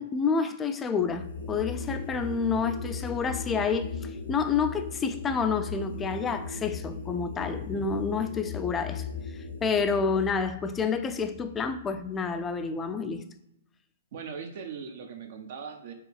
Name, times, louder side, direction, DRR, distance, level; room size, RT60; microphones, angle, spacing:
voice 1, 0.0-9.0 9.6-13.2, left 5 dB, 15° left, 0.3 m, -29 dB
sound 1, 1.0-12.3, left 4 dB, 80° left, 0.6 m, -38 dB
voice 2, 7.6-7.9 14.1-15.9, right 6 dB, 55° right, 0.6 m, -40 dB
4.7 x 2.4 x 3.3 m
hypercardioid pair, 135°, 0 cm